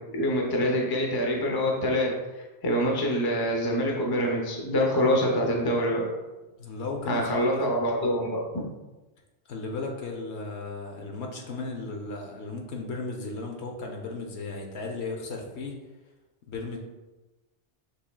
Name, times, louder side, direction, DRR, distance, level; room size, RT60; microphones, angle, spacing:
voice 1, 0.1-6.0 7.1-8.7, equal, 25° left, 0 dB, 0.6 m, -26 dB
voice 2, 6.6-7.7 9.5-15.7 16.5-16.8, left 3 dB, 70° left, 1 dB, 1.0 m, -35 dB
6.6 x 3.2 x 2.2 m, 1.1 s
omnidirectional pair, 1.2 m